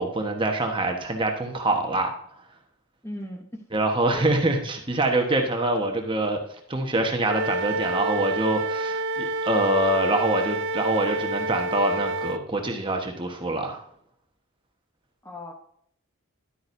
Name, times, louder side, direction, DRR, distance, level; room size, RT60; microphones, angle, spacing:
voice 1, 0.0-2.1 3.7-6.4 6.7-13.8, right 2 dB, 20° right, 3 dB, 1.2 m, -25 dB
voice 2, 3.0-3.6 4.1-4.4 15.2-15.5, equal, 10° left, 2 dB, 0.9 m, -37 dB
Wind instrument woodwind instrument, 7.3-12.4, right 2 dB, 55° right, 0.5 m, -28 dB
11.5 x 8.8 x 2.7 m, 0.68 s
head